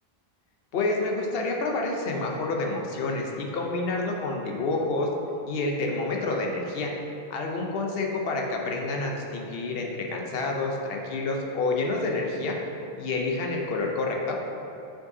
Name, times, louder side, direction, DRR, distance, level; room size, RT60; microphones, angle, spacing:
voice 1, 0.7-5.1 5.4-6.9 7.3-12.5 13.0-14.4, left 3 dB, 70° left, 0 dB, 0.9 m, -28 dB
7.3 x 6.3 x 2.7 m, 2.7 s
omnidirectional pair, 1.0 m